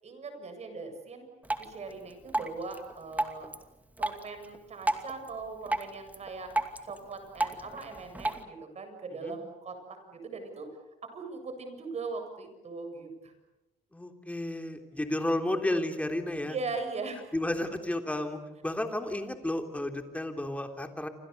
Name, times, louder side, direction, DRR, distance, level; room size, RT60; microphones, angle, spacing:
voice 1, 0.0-1.3 1.6-3.5 4.0-6.5 6.8-10.7 11.0-13.3 16.4-17.3, right 4 dB, 40° right, 6 dB, 7.7 m, -40 dB
Drip, 1.4-8.4, right 2 dB, 10° right, 2.5 m, -35 dB
voice 2, 13.9-16.6 17.3-21.1, left 1 dB, 10° left, 5 dB, 3.5 m, -32 dB
29.0 x 26.0 x 6.9 m, 1.0 s
cardioid pair, 110°, 17 cm